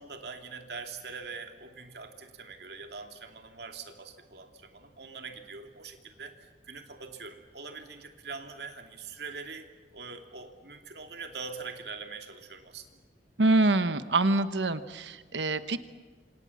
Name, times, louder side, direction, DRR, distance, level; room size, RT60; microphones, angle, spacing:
voice 1, 0.0-13.0, right 4 dB, 65° right, 5 dB, 2.7 m, -43 dB
voice 2, 13.4-15.8, right 2 dB, 85° right, 11 dB, 1.1 m, -25 dB
27.0 x 27.0 x 7.3 m, 1.4 s
head